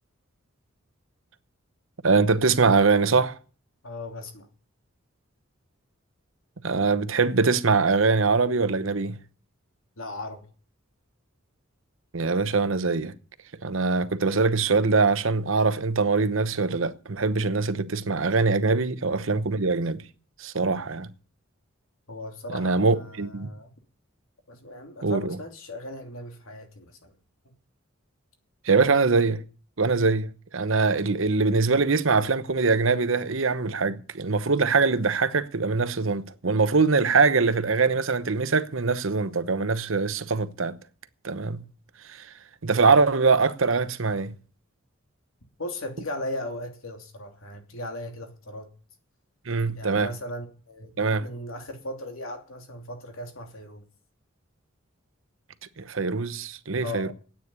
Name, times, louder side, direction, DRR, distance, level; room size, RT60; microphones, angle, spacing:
voice 1, 2.0-3.3 6.6-9.2 12.1-13.1 13.6-20.0 20.4-21.1 22.5-23.5 25.0-25.4 28.6-29.4 29.8-40.8 41.2-41.6 42.1-42.3 42.6-44.3 49.5-50.1 51.0-51.3 55.8-57.1, right 4 dB, 65° right, 0.9 m, -23 dB
voice 2, 3.8-4.5 10.0-10.5 22.1-23.7 24.5-27.1 45.6-48.7 49.8-53.8 56.8-57.1, left 1 dB, 80° left, 2.9 m, -37 dB
9.7 x 9.1 x 9.6 m
head